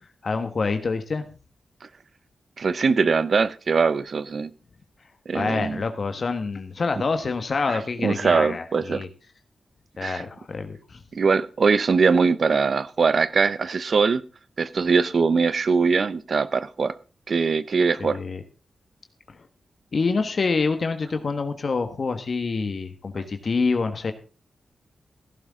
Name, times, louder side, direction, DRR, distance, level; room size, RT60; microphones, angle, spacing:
voice 1, 0.2-1.2 5.3-9.1 10.0-11.0 18.0-18.4 19.3-19.4 19.9-24.1, left 4 dB, 60° left, 1.4 m, -26 dB
voice 2, 2.6-4.5 5.3-5.8 7.7-9.0 10.0-10.2 11.1-14.2 14.6-16.9 17.3-18.2, right 5 dB, 65° right, 0.7 m, -22 dB
16.5 x 11.0 x 3.7 m
cardioid pair, 50°, 0 cm